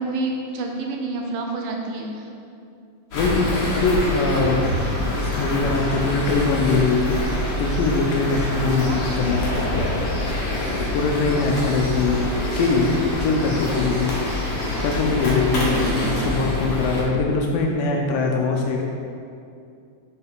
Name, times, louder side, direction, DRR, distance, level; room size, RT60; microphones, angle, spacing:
voice 1, 0.0-2.3 8.9-9.4 15.4-16.2 18.3-18.5, right 3 dB, 80° right, 2 dB, 2.2 m, -29 dB
voice 2, 3.1-4.8 5.1-7.2 7.6-9.6 10.6-12.9 13.2-14.1 14.8-18.9, left 4 dB, 80° left, 1 dB, 2.1 m, -22 dB
sound 1, 3.1-17.0, left 1 dB, 60° left, 1.6 m, -25 dB
sound 2, 3.1-16.3, right 1 dB, 45° right, 1.5 m, -42 dB
6.8 x 5.3 x 3.6 m, 2.4 s
omnidirectional pair, 4.2 m